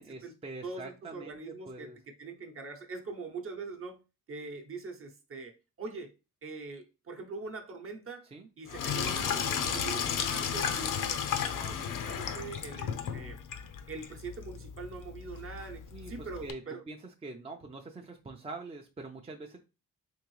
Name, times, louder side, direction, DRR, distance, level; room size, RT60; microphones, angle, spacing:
voice 1, 0.0-2.0 8.3-8.5 15.9-16.6 16.9-17.0 17.2-19.6, right 3 dB, 20° right, 0.5 m, -44 dB
voice 2, 0.6-4.0 4.3-6.1 6.4-8.3 8.6-13.4 13.9-16.8, right 4 dB, 40° right, 0.8 m, -43 dB
Sink (filling or washing), 8.7-16.5, left 7 dB, 70° left, 0.6 m, -34 dB
3.6 x 3.0 x 3.1 m
cardioid pair, 105°, 33 cm